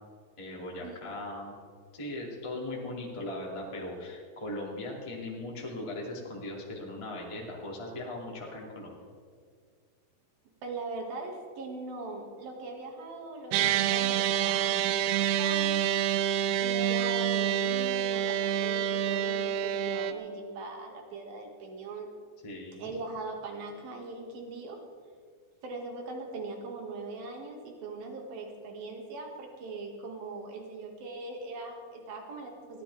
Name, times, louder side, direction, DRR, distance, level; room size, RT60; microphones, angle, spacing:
voice 1, 0.4-1.5 1.9-8.9 22.4-22.9, left 1 dB, 10° left, -3 dB, 1.4 m, -39 dB
voice 2, 10.6-15.8 16.6-22.1 22.8-24.8 25.6-32.8, right 3 dB, 55° right, 1 dB, 3.6 m, -40 dB
sound 1, 13.5-20.1, right 10 dB, 80° right, 2.3 m, -27 dB
22.0 x 15.5 x 3.6 m, 2.1 s
omnidirectional pair, 5.4 m